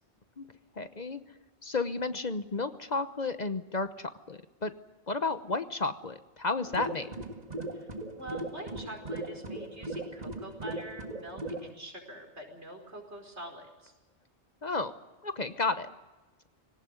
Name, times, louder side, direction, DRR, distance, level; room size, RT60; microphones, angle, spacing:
voice 1, 0.8-1.2 1.6-4.7 5.1-7.1 14.6-14.9 15.2-15.9, left 3 dB, 40° left, 11 dB, 1.1 m, -32 dB
sound 1, 6.6-11.7, right 1 dB, 40° right, 1.9 m, -38 dB
voice 2, 8.2-13.9, right 1 dB, 80° right, 3 dB, 5.3 m, -45 dB
20.5 x 18.5 x 9.6 m, 1.1 s
omnidirectional pair, 1.1 m